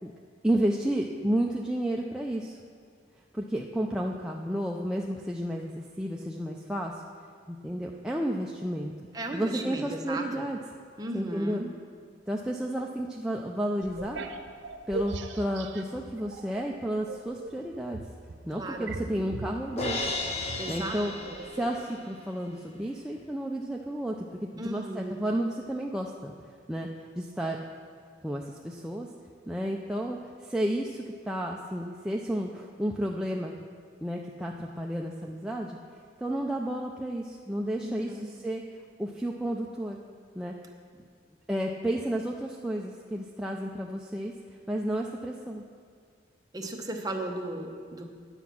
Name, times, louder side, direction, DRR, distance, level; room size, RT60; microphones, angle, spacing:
voice 1, 0.4-2.6 3.3-6.9 7.5-8.9 9.3-10.6 11.1-11.6 12.3-14.2 14.9-18.0 18.4-20.0 20.7-21.1 21.5-26.3 26.7-26.9 27.2-27.6 28.2-29.1 29.5-33.5 34.0-35.8 36.2-38.6 39.0-40.0 40.3-40.5 41.5-44.3 44.7-45.6, right 1 dB, 5° right, -1 dB, 0.4 m, -31 dB
voice 2, 9.1-10.5 11.0-11.7 18.5-18.9 20.6-21.0 21.2-21.3 24.6-25.2 37.8-38.3 46.5-48.0, right 1 dB, 20° right, 2 dB, 0.9 m, -35 dB
sound 1, 13.8-16.7 17.0-21.8, right 2 dB, 85° right, 0.7 m, -39 dB
Crash cymbal, 19.8-22.0, left 2 dB, 35° left, 0.9 m, -34 dB
9.7 x 8.2 x 6.0 m, 2.1 s
head